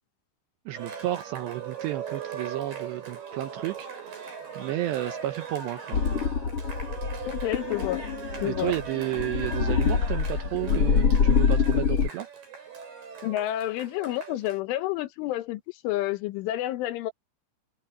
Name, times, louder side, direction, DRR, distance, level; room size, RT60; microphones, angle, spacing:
Cheering, 0.7-14.6, right 7 dB, 50° right, 9.2 m, -39 dB
voice 1, 0.7-6.0 8.4-12.3, right 15 dB, 75° right, 2.6 m, -32 dB
sound 1, 5.9-12.1, left 6 dB, 55° left, 1.7 m, -25 dB
voice 2, 7.3-8.0 8.4-8.7 13.2-17.1, left 14 dB, 75° left, 3.5 m, -29 dB
omnidirectional pair, 5.8 m